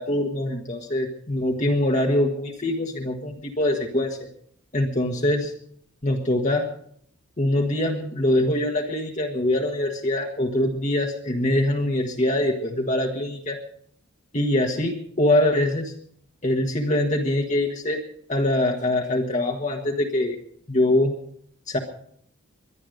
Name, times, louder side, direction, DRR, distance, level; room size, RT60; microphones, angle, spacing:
voice 1, 0.0-4.2 4.7-5.5 6.0-6.7 7.4-13.6 14.3-15.9 16.4-18.0 18.3-20.4 20.7-21.1 21.7-21.8, left 1 dB, 35° left, 1 dB, 1.5 m, -23 dB
22.5 x 10.5 x 5.2 m, 0.62 s
head